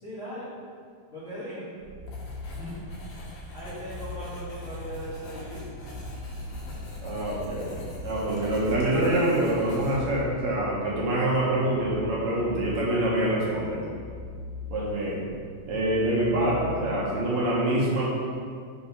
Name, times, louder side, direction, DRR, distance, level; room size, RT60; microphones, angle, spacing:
voice 1, 0.0-0.5 1.1-1.7 2.2-5.7, equal, 75° left, -11 dB, 0.6 m, -39 dB
sound 1, 1.8-17.3, left 3 dB, 80° right, 2.0 m, -41 dB
Writing, 2.1-10.3, left 1 dB, 60° left, 2.0 m, -42 dB
voice 2, 7.0-7.7 8.0-13.9 14.7-15.2 15.7-18.0, right 1 dB, 65° right, -6 dB, 2.1 m, -25 dB
5.5 x 4.2 x 5.5 m, 2.1 s
omnidirectional pair, 4.0 m